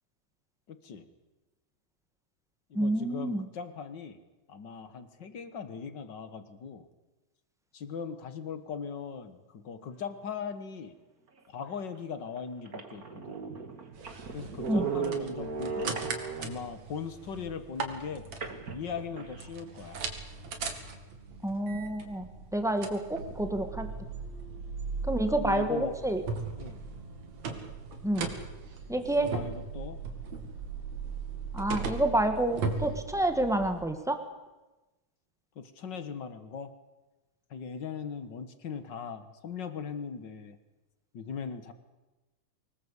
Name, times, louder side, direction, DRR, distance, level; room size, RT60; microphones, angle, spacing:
voice 1, 0.7-1.1 2.7-4.2 4.5-6.9 7.7-10.9 11.5-13.4 14.3-16.0 16.4-18.3 18.7-20.0 25.0-26.0 26.6-26.8 29.1-30.0 35.5-36.7 37.5-40.6 41.1-41.7, left 6 dB, 50° left, 11 dB, 1.4 m, -39 dB
voice 2, 2.7-3.4 14.7-14.9 21.4-23.9 25.1-26.2 28.0-28.3 28.9-29.3 31.5-34.2, right 1 dB, ahead, 6 dB, 0.8 m, -28 dB
sound 1, 11.7-11.8 12.4-12.5 12.7-16.7 18.4-19.5, right 5 dB, 35° right, 1.9 m, -37 dB
sound 2, 13.9-33.8, right 4 dB, 55° right, 3.3 m, -39 dB
24.5 x 20.0 x 8.3 m, 1.1 s
omnidirectional pair, 3.9 m